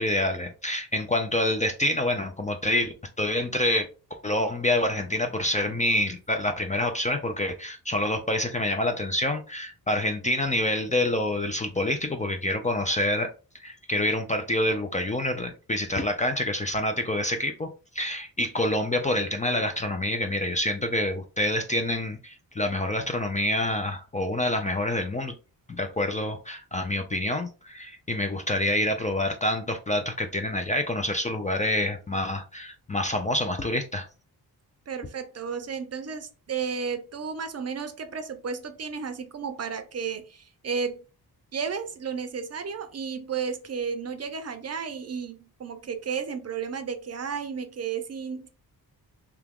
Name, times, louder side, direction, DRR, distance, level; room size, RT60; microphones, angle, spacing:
voice 1, 0.0-3.9 4.2-13.3 13.6-17.7 17.9-25.3 25.7-34.1, left 1 dB, 20° left, 0.4 m, -27 dB
voice 2, 34.9-41.0 41.5-48.5, right 6 dB, 40° right, 0.5 m, -33 dB
2.9 x 2.3 x 3.5 m
wide cardioid pair, 100°, 38 cm